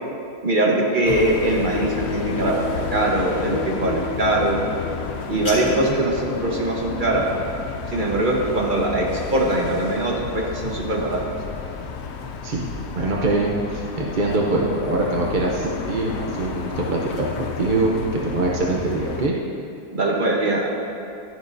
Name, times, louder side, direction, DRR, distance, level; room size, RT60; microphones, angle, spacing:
voice 1, 0.4-4.6 5.3-7.3 7.9-11.2 19.9-20.7, right 1 dB, 35° right, -2 dB, 1.3 m, -22 dB
sound 1, 1.0-19.3, left 5 dB, 70° left, 0.6 m, -31 dB
sound 2, 5.0-6.0, left 2 dB, 30° left, 1.6 m, -34 dB
voice 2, 12.9-17.9 18.2-19.3, right 2 dB, 50° right, -2 dB, 0.6 m, -23 dB
12.5 x 10.5 x 2.6 m, 2.6 s
omnidirectional pair, 1.8 m